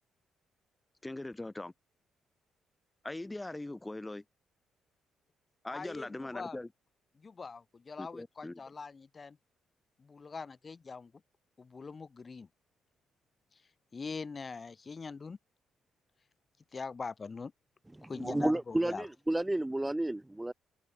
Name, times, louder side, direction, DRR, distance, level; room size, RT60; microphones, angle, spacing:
voice 1, 1.0-1.7 3.0-4.2 5.6-6.7 8.0-8.6, left 2 dB, 15° left, 7.6 m, -41 dB
voice 2, 5.7-6.6 7.2-9.4 10.0-11.1 11.6-12.5 13.5-13.6 13.9-15.4 16.7-17.5 18.0-19.1, left 4 dB, 35° left, 2.2 m, -43 dB
voice 3, 18.0-20.5, right 1 dB, 10° right, 2.1 m, -31 dB
cardioid pair, 90°, 0 cm